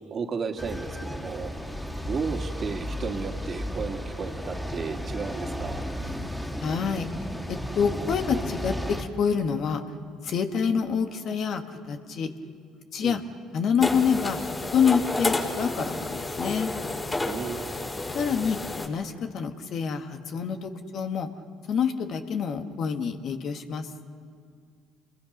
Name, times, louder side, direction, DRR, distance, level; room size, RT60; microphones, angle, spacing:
voice 1, 0.0-1.5 2.1-5.9 13.0-13.2 17.2-17.9, right 5 dB, 45° right, 4 dB, 2.2 m, -33 dB
sound 1, 0.6-9.0, equal, 5° left, 3.0 m, -34 dB
voice 2, 6.6-7.1 7.5-9.8 10.2-12.3 12.9-13.2 13.5-14.4 14.7-16.7 18.1-18.6 18.9-21.3 21.7-23.9, left 6 dB, 55° left, 6 dB, 1.8 m, -27 dB
sound 2, 13.8-18.9, left 2 dB, 25° left, 4.9 m, -30 dB
29.5 x 22.0 x 5.5 m, 2.2 s
supercardioid pair, 70°, 0 cm